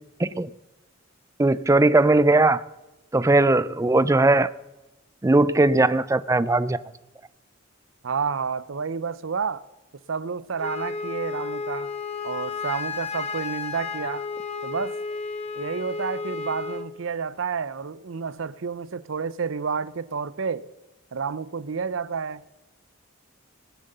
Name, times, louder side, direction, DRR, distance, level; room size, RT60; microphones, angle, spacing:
voice 1, 0.2-0.5 1.4-2.6 3.1-4.5 5.2-6.8, right 2 dB, 15° right, 0.4 m, -19 dB
voice 2, 8.0-9.6 10.1-11.9 12.2-14.2 14.6-15.0 15.5-20.7 21.1-22.4, right 5 dB, 60° right, 0.6 m, -30 dB
Wind instrument woodwind instrument, 10.6-16.9, left 4 dB, 30° left, 1.1 m, -32 dB
19.0 x 7.5 x 6.7 m
head